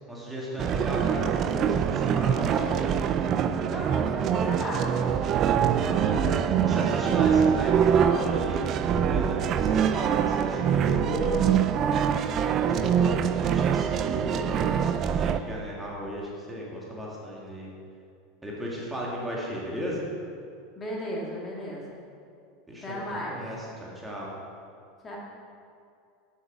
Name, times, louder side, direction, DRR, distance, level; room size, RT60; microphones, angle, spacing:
voice 1, 0.1-3.1 5.8-6.2 6.6-11.4 12.5-17.7 18.4-20.1 22.7-24.3, equal, 10° right, -4 dB, 1.8 m, -35 dB
sound 1, 0.6-15.4, right 8 dB, 45° right, 0.4 m, -24 dB
voice 2, 3.7-4.9 5.8-6.5 20.8-21.8 22.8-23.5 25.0-25.2, equal, 25° left, -3 dB, 1.9 m, -35 dB
7.2 x 7.0 x 4.9 m, 2.4 s
hypercardioid pair, 100°, 0 cm